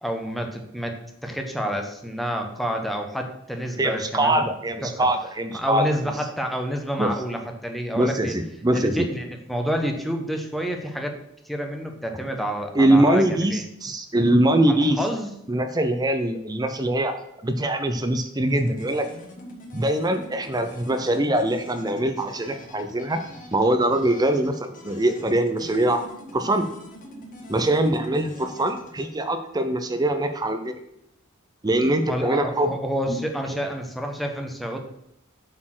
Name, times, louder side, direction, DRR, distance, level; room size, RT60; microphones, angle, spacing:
voice 1, 0.0-4.5 4.8-5.1 5.5-8.3 8.7-11.2 11.4-13.3 13.5-13.6 14.7-15.3 32.1-34.8, equal, ahead, 3 dB, 1.0 m, -29 dB
voice 2, 3.8-5.8 7.0-7.1 7.9-9.1 12.7-15.0 15.5-17.1 17.4-19.0 19.7-23.2 23.5-26.0 26.3-26.7 27.5-30.8 31.6-32.7 33.1-33.2, right 1 dB, 20° right, 8 dB, 0.6 m, -22 dB
sound 1, 18.5-29.1, left 1 dB, 40° left, 1.7 m, -44 dB
7.6 x 4.3 x 6.1 m, 0.81 s
head